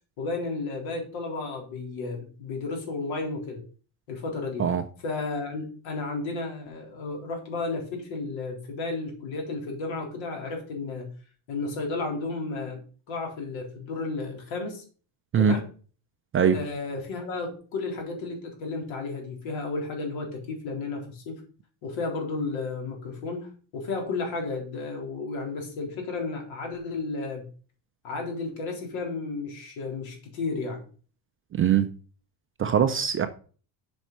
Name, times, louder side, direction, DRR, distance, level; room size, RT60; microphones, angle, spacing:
voice 1, 0.2-3.6 4.1-4.7 5.0-11.1 11.5-12.8 13.1-14.8 15.4-15.7 16.5-21.4 21.8-27.4 28.0-30.9, left 3 dB, 70° left, 3.9 m, -33 dB
voice 2, 31.5-31.9 32.6-33.3, right 7 dB, 25° right, 0.5 m, -22 dB
7.6 x 5.4 x 6.7 m
cardioid pair, 175°, 49 cm